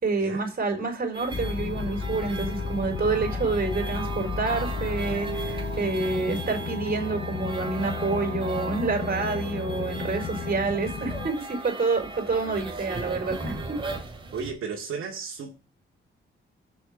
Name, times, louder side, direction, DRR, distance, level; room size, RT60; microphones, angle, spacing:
voice 1, 0.0-11.3 11.6-13.5, right 4 dB, 45° right, 4.4 m, -28 dB
sound 1, 1.1-14.5, right 3 dB, 25° right, 2.4 m, -37 dB
sound 2, 1.3-11.3, left 5 dB, 45° left, 1.0 m, -33 dB
voice 2, 14.3-15.5, right 5 dB, 80° right, 2.1 m, -34 dB
7.1 x 6.5 x 7.3 m
cardioid pair, 90°, 21 cm